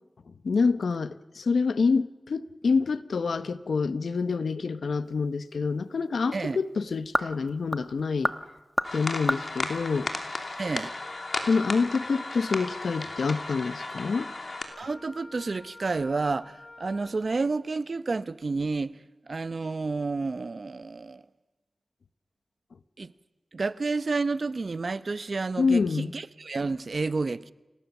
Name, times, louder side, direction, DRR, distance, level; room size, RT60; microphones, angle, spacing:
voice 1, 0.4-8.3 8.9-10.1 11.5-14.3 25.6-26.1, left 4 dB, 90° left, 0.8 m, -27 dB
sound 1, 5.0-10.8, equal, 5° right, 1.2 m, -34 dB
sound 2, 8.8-14.6, left 2 dB, 55° left, 2.9 m, -35 dB
voice 2, 10.6-10.9 14.8-18.9 19.3-21.2 23.0-23.1 23.5-27.5, right 3 dB, 60° right, 0.7 m, -30 dB
Wind instrument woodwind instrument, 11.0-17.2, left 2 dB, 35° left, 2.6 m, -49 dB
27.5 x 18.5 x 7.1 m
wide cardioid pair, 60°, 0 cm